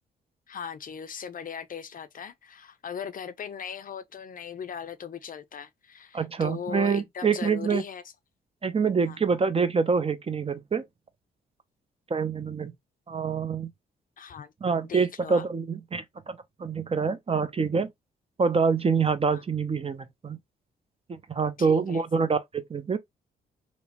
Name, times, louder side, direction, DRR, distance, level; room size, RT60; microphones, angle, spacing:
voice 1, 0.5-8.0 9.1-9.2 14.2-14.5 14.8-15.5 19.3-19.4 21.6-22.0, left 7 dB, 45° left, 0.5 m, -39 dB
voice 2, 6.1-7.8 8.6-10.8 12.1-12.7 13.1-13.7 14.6-17.9 18.4-20.4 21.1-23.0, right 5 dB, 30° right, 0.5 m, -26 dB
2.9 x 2.0 x 2.8 m
supercardioid pair, 50°, 19 cm